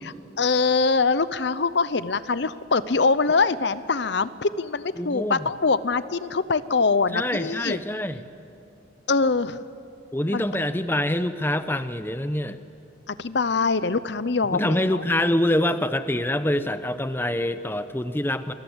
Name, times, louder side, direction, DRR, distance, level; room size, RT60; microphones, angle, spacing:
voice 1, 0.0-7.8 9.1-9.7 10.3-10.4 13.1-15.0, left 4 dB, 60° left, 15 dB, 0.7 m, -23 dB
voice 2, 5.0-5.4 7.1-8.2 10.1-12.6 14.5-18.5, left 1 dB, 10° left, 11 dB, 0.7 m, -25 dB
27.5 x 21.5 x 8.0 m, 2.7 s
head